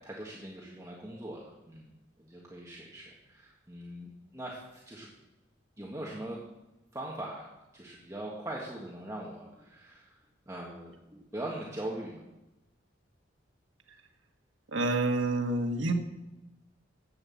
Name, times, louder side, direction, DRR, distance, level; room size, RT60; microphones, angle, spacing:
voice 1, 0.0-1.9 2.2-5.1 5.8-6.4 6.9-7.4 7.7-10.1 10.5-12.2, right 1 dB, 15° right, -4 dB, 1.7 m, -41 dB
voice 2, 14.7-15.9, right 2 dB, 85° right, 4 dB, 1.4 m, -28 dB
11.0 x 8.6 x 7.2 m, 0.98 s
head